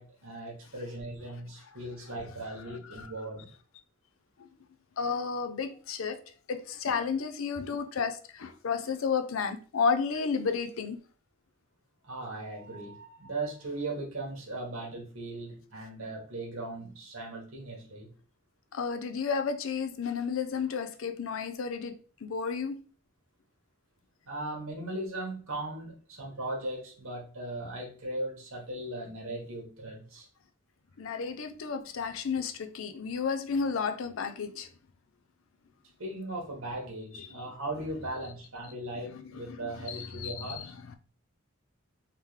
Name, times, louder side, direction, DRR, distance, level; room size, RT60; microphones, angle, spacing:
voice 1, 0.0-3.5 12.0-18.1 24.2-30.3 36.0-40.7, right 2 dB, 85° right, 1.4 m, -38 dB
voice 2, 5.0-6.2 6.5-11.0 18.7-22.8 31.0-34.7 37.1-37.4 39.1-41.0, left 5 dB, 75° left, 0.5 m, -32 dB
3.7 x 2.9 x 3.2 m
head